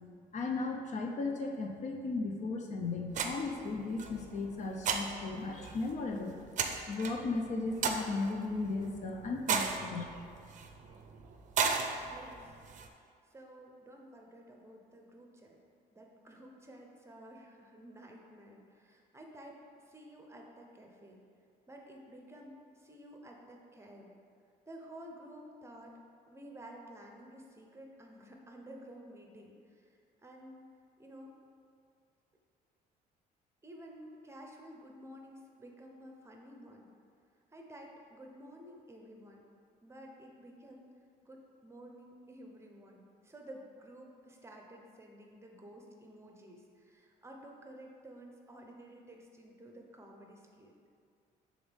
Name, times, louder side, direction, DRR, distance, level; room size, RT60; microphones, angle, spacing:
voice 1, 0.3-6.4 6.9-10.0, left 3 dB, 45° left, 3 dB, 0.5 m, -36 dB
sound 1, 3.1-12.9, right 5 dB, 45° right, 0.5 m, -37 dB
voice 2, 11.9-12.6 13.3-15.6 15.9-21.2 21.7-24.1 24.7-26.0 26.3-30.7 31.0-31.4 33.6-36.9 37.5-39.4 39.8-40.9 41.2-50.9, right 1 dB, 15° right, 0 dB, 0.8 m, -52 dB
7.7 x 3.6 x 3.5 m, 2.3 s
cardioid pair, 110°, 17 cm